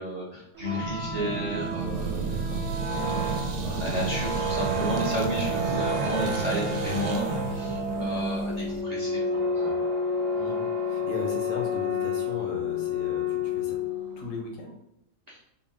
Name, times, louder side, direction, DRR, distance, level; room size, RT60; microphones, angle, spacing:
voice 1, 0.0-2.2 2.7-9.7 15.3-15.4, equal, 35° right, -6 dB, 0.7 m, -33 dB
sound 1, 0.6-14.3, left 2 dB, 65° right, 0.8 m, -30 dB
sound 2, 0.8-8.8, right 4 dB, 85° right, 1.2 m, -32 dB
voice 2, 2.3-2.6 10.3-13.8 14.2-14.7, left 3 dB, 70° left, 0 dB, 1.3 m, -37 dB
4.1 x 2.0 x 3.5 m, 0.82 s
omnidirectional pair, 1.7 m